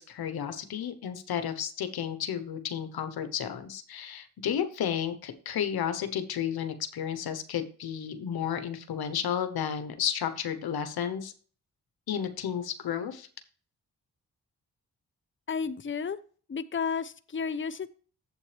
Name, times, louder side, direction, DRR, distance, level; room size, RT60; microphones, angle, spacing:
voice 1, 0.0-11.3 12.1-13.3, left 9 dB, 85° left, 9 dB, 1.1 m, -32 dB
voice 2, 15.5-16.2 16.5-18.0, left 6 dB, 35° left, 12 dB, 0.8 m, -32 dB
8.3 x 7.8 x 3.3 m, 0.41 s
supercardioid pair, 40°, 36 cm